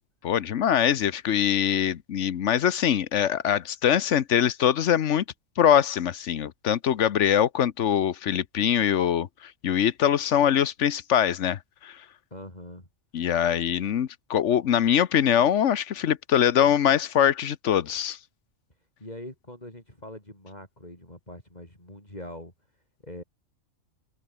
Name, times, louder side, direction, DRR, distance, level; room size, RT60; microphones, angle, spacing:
voice 1, 0.2-5.2 5.6-12.0 13.1-18.2, left 9 dB, 60° left, 1.1 m, -23 dB
voice 2, 12.3-12.9 19.0-22.5 23.0-23.2, left 1 dB, 30° left, 6.6 m, -42 dB
open air
omnidirectional pair, 1.4 m